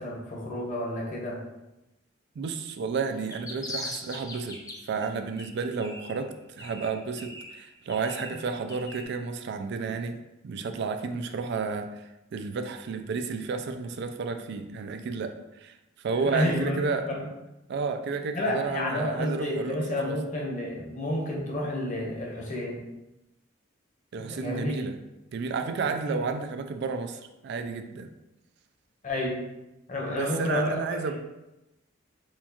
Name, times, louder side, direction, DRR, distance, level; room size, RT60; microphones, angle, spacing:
voice 1, 0.0-1.4 16.2-17.3 18.3-22.9 24.2-24.8 25.8-26.4 29.0-29.4 29.9-30.7 31.1-31.2, left 1 dB, 40° left, -2 dB, 0.9 m, -30 dB
voice 2, 2.4-10.2 10.4-15.8 16.0-17.1 17.7-20.2 24.1-25.0 25.3-28.1 30.1-31.2, right 4 dB, 60° right, 7 dB, 0.3 m, -32 dB
sound 1, 3.1-5.1 5.4-6.3 6.6-9.0, left 1 dB, 20° left, 0.6 m, -41 dB
4.3 x 2.3 x 2.8 m, 0.95 s
head